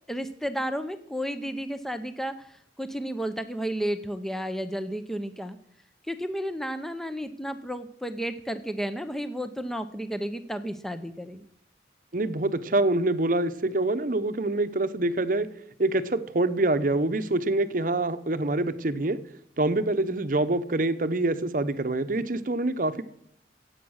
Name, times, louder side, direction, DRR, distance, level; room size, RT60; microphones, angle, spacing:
voice 1, 0.1-5.6 6.1-11.5, equal, ahead, 9 dB, 0.6 m, -32 dB
voice 2, 12.1-15.5 15.8-19.2 19.6-23.0, right 2 dB, 50° right, 11 dB, 0.8 m, -25 dB
15.5 x 8.3 x 6.4 m, 0.71 s
head